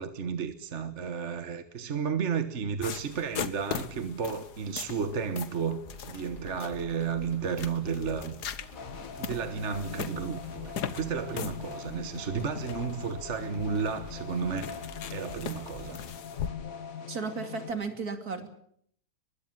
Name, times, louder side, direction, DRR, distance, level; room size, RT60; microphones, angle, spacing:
voice 1, 0.0-5.8 6.1-8.3 9.2-14.8 15.1-16.0, right 6 dB, 50° right, 1.5 m, -32 dB
sound 1, 2.8-16.5, left 8 dB, 80° left, 1.8 m, -40 dB
sound 2, 5.8-16.1, equal, 30° left, 4.0 m, -48 dB
sound 3, 8.7-17.7, left 7 dB, 60° left, 1.7 m, -42 dB
voice 2, 17.1-18.5, right 4 dB, 65° right, 3.3 m, -34 dB
22.5 x 22.0 x 7.5 m
omnidirectional pair, 1.7 m